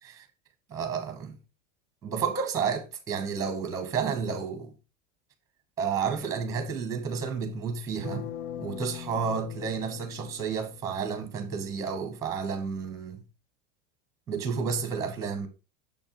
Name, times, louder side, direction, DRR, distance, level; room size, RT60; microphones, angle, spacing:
voice 1, 0.7-1.3 2.0-4.7 5.8-8.3 8.6-13.2 14.3-15.5, right 6 dB, 10° right, 0.8 m, -31 dB
sound 1, 8.0-11.1, left 10 dB, 80° left, 0.7 m, -41 dB
6.6 x 6.3 x 2.9 m
supercardioid pair, 170°, 35 cm